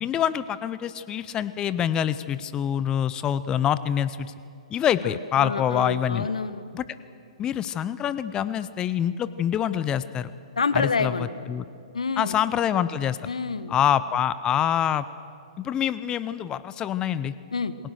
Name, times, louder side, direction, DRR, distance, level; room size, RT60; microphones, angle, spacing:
voice 1, 0.0-4.3 4.7-6.3 6.7-6.8 7.4-10.3 10.7-11.1 11.5-11.6 12.2-13.2 13.7-15.0 15.6-17.3, left 9 dB, 20° left, 15 dB, 0.7 m, -25 dB
voice 2, 5.0-6.6 10.6-11.4 11.9-12.4 13.2-13.7 17.5-17.7, left 4 dB, 80° left, 14 dB, 1.3 m, -28 dB
28.0 x 20.5 x 6.6 m, 2.5 s
figure-of-eight pair, 120°, 3 cm